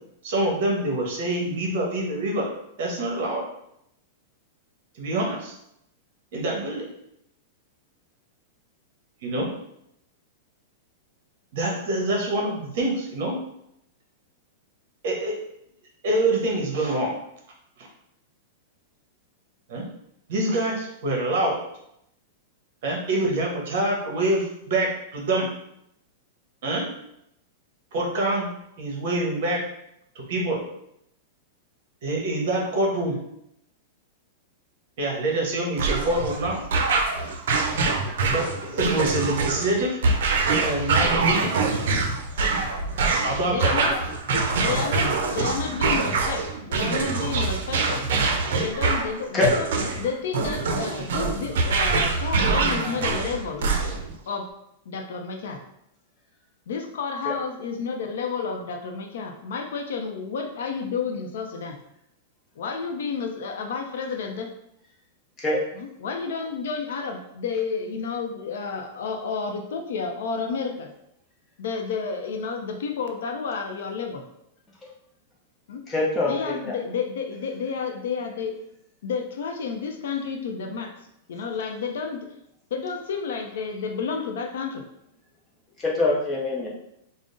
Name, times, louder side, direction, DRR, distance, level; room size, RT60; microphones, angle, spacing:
voice 1, 0.2-2.5 2.8-3.4 5.0-5.5 6.3-6.9 9.2-9.5 11.5-13.4 15.0-15.4 16.0-17.1 19.7-19.9 20.3-21.6 22.8-25.5 26.6-26.9 27.9-28.5 28.8-29.6 30.1-30.6 32.0-33.1 35.0-36.6 38.3-40.0 40.4-41.5 43.2-43.9, right 1 dB, 50° right, -1 dB, 1.0 m, -25 dB
sound 1, 35.8-54.2, right 3 dB, 70° right, 0.5 m, -24 dB
voice 2, 43.5-44.0 44.3-48.0 48.6-49.7 50.0-53.7 54.3-54.5 54.9-55.6 56.7-61.8 62.6-64.5 65.8-70.9 71.6-74.2 75.7-75.8 76.3-78.5 79.0-80.9 81.3-82.2 82.7-84.8, left 5 dB, 70° left, 4 dB, 0.5 m, -31 dB
voice 3, 75.9-76.8 85.8-86.7, left 2 dB, 15° left, -3 dB, 0.6 m, -24 dB
3.7 x 2.0 x 3.7 m, 0.78 s
supercardioid pair, 175°, 0 cm